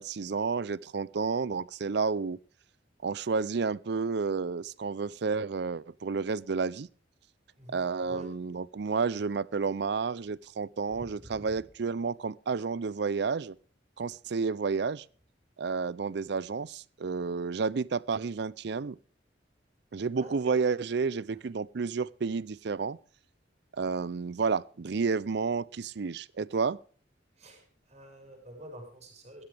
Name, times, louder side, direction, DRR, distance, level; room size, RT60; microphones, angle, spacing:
voice 1, 0.0-2.4 3.0-6.9 7.7-13.6 14.0-15.0 15.6-19.0 19.9-23.0 23.8-26.8, right 5 dB, 60° right, 0.5 m, -31 dB
voice 2, 10.9-11.6 20.2-20.6 21.3-21.4 27.4-29.4, right 1 dB, 35° right, 5.4 m, -48 dB
16.5 x 13.0 x 3.4 m
head